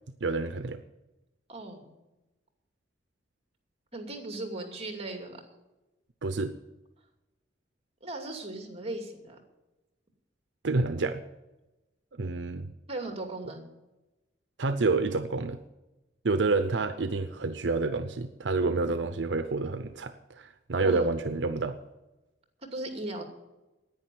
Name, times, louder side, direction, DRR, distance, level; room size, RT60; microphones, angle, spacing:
voice 1, 0.2-0.8 6.2-6.5 10.6-11.2 12.2-12.7 14.6-15.6 16.2-21.8, right 3 dB, 80° right, 10 dB, 0.7 m, -28 dB
voice 2, 1.5-1.9 3.9-5.4 8.0-9.4 12.9-13.7 20.8-21.1 22.7-23.2, right 2 dB, 35° right, 4 dB, 2.6 m, -37 dB
10.5 x 9.6 x 9.4 m, 1.0 s
head